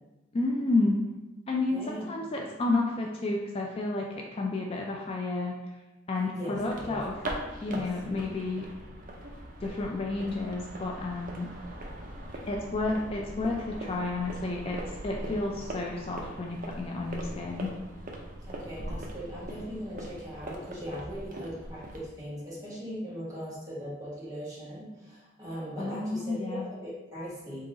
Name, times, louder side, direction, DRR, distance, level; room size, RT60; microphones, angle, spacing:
voice 1, 0.3-1.1 1.5-5.5 6.1-7.1 7.6-8.7 9.6-11.5 12.5-17.7 25.8-26.7, left 2 dB, 30° left, -1 dB, 0.4 m, -31 dB
voice 2, 1.7-2.0 6.3-7.0 7.7-7.9 18.4-27.7, equal, 20° right, -8 dB, 1.4 m, -39 dB
sound 1, 6.5-22.1, right 1 dB, 45° right, 0.6 m, -41 dB
3.7 x 2.8 x 3.9 m, 1.1 s
head